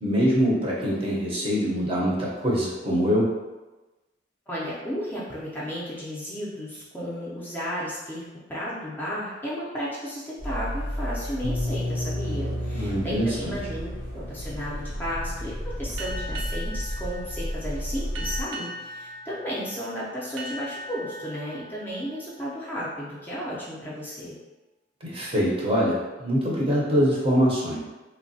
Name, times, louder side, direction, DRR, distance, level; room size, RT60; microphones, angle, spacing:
voice 1, 0.0-3.2 12.7-13.6 25.0-27.8, equal, 30° right, -5 dB, 0.6 m, -24 dB
voice 2, 4.5-24.3, equal, 10° left, -8 dB, 0.4 m, -34 dB
sound 1, 10.4-18.4, equal, 90° right, 0.9 m, -33 dB
sound 2, 11.4-17.2, left 2 dB, 75° left, 0.4 m, -36 dB
sound 3, 16.0-23.3, right 1 dB, 70° right, 0.4 m, -40 dB
3.1 x 2.1 x 2.6 m, 1.1 s
head